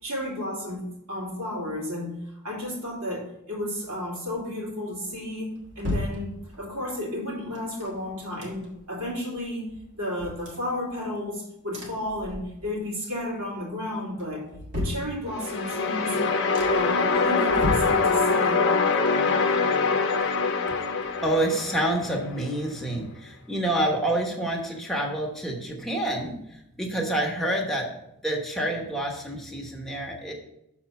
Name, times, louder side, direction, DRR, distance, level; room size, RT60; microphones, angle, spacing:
voice 1, 0.0-2.1 2.4-14.4 14.7-16.2 16.6-18.6, left 1 dB, 70° right, -5 dB, 2.9 m, -32 dB
sound 1, 5.1-6.8 7.5-9.0 9.3-9.4 9.7-11.3 11.7-12.9 13.2-13.7 14.2-15.6 16.1-16.2 16.5-17.0 17.4-18.6 18.9-20.7 21.1-21.2, left 1 dB, 55° right, 1.7 m, -36 dB
sound 2, 15.3-22.3, left 4 dB, 50° left, 0.7 m, -24 dB
voice 2, 21.2-27.9 28.2-30.3, right 1 dB, ahead, -1 dB, 1.1 m, -28 dB
6.4 x 4.3 x 5.8 m, 0.83 s
head